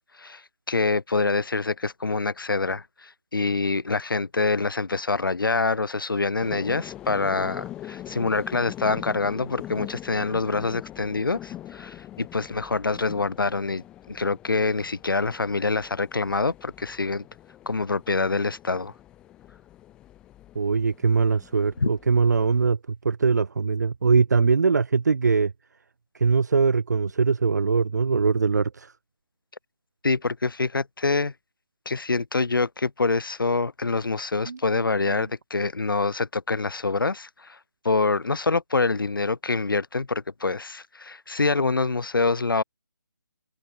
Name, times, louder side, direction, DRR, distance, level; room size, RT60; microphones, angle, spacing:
voice 1, 0.1-17.2 17.7-18.9 21.8-21.9 30.0-31.3 31.9-37.6 37.8-42.6, left 3 dB, 80° left, 5.3 m, -26 dB
sound 1, 6.4-22.7, left 13 dB, 10° left, 5.1 m, -43 dB
voice 2, 20.6-25.5 26.2-28.9 34.5-34.6 35.1-35.2, right 5 dB, 55° right, 1.9 m, -22 dB
hypercardioid pair, 175°, 11 cm